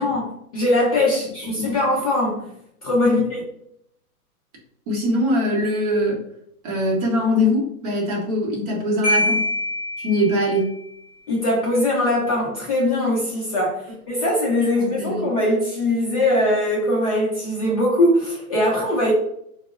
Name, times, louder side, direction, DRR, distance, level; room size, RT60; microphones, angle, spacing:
voice 1, 0.0-2.5 2.8-3.4 11.3-19.1, left 1 dB, 25° left, -4 dB, 0.5 m, -21 dB
voice 2, 4.9-6.2 6.6-9.4 10.0-10.7 14.8-15.2, left 1 dB, 25° right, -2 dB, 0.7 m, -22 dB
Marimba xylophone, 9.0-10.8, left 1 dB, 5° left, 1.2 m, -24 dB
4.5 x 2.0 x 2.4 m, 0.73 s
hypercardioid pair, 145°, 45 cm